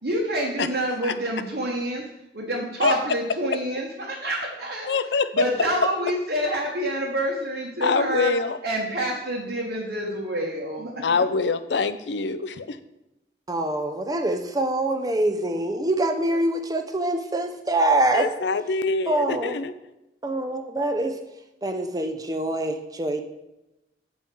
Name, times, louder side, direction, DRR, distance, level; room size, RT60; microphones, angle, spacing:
voice 1, 0.0-2.0 2.3-4.9 5.3-8.3 8.6-11.3, right 1 dB, 65° right, -4 dB, 1.4 m, -27 dB
voice 2, 4.9-5.3 7.8-8.6 11.0-12.8 18.1-19.7, left 4 dB, 80° left, 13 dB, 0.5 m, -24 dB
voice 3, 13.5-18.3 19.1-19.6 20.2-21.1 21.6-23.2, right 1 dB, 20° right, 6 dB, 0.6 m, -24 dB
8.5 x 5.5 x 4.6 m, 0.93 s
head